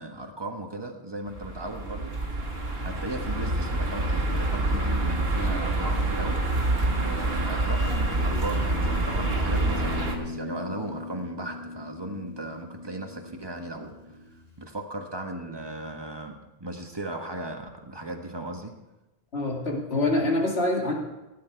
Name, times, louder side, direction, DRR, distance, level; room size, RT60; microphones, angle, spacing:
voice 1, 0.0-2.3 2.8-6.4 7.0-13.9 14.3-18.7, right 1 dB, 25° right, 3 dB, 1.4 m, -37 dB
sound 1, 1.3-10.1, right 2 dB, 70° right, 1.9 m, -27 dB
Guitar, 8.1-14.6, left 1 dB, 65° left, 2.3 m, -38 dB
voice 2, 19.3-20.9, left 2 dB, 85° left, -1 dB, 2.5 m, -25 dB
16.5 x 8.8 x 4.6 m, 1.0 s
omnidirectional pair, 1.0 m